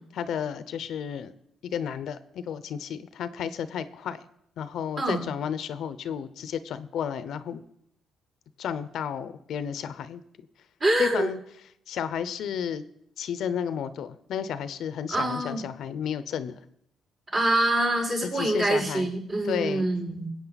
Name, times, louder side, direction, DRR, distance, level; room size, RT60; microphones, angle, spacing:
voice 1, 0.2-1.3 1.7-4.2 4.6-7.6 8.6-10.2 11.0-11.4 11.9-12.8 13.2-16.5 18.2-19.1 19.5-19.9, left 8 dB, 75° left, 13 dB, 0.7 m, -32 dB
voice 2, 10.8-11.3 15.1-15.6 17.3-20.3, right 1 dB, 45° right, -4 dB, 5.7 m, -25 dB
21.0 x 8.5 x 4.1 m, 0.73 s
cardioid pair, 90°, 0 cm